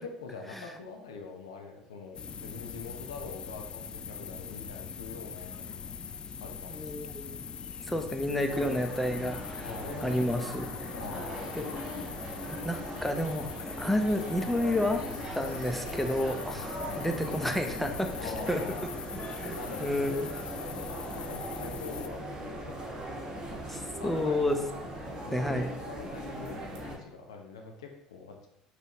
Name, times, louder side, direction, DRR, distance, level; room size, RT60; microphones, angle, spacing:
voice 1, 0.0-5.9 6.4-7.0 9.6-10.3 10.9-11.6 16.5-17.0 18.2-18.9 19.5-22.9 24.0-24.5 25.2-28.5, left 4 dB, 85° left, 3 dB, 0.7 m, -44 dB
sound 1, 2.1-22.1, left 6 dB, 35° left, 0.3 m, -42 dB
voice 2, 6.7-7.3 7.9-9.7 10.0-10.7 11.6-11.7 12.6-15.0 15.4-18.6 19.4-20.3 23.7-24.6 25.3-25.7, left 1 dB, 5° left, 5 dB, 0.7 m, -30 dB
sound 2, 8.5-27.0, right 1 dB, 30° right, 1.3 m, -39 dB
5.4 x 3.1 x 3.0 m, 0.82 s
hypercardioid pair, 70°, 3 cm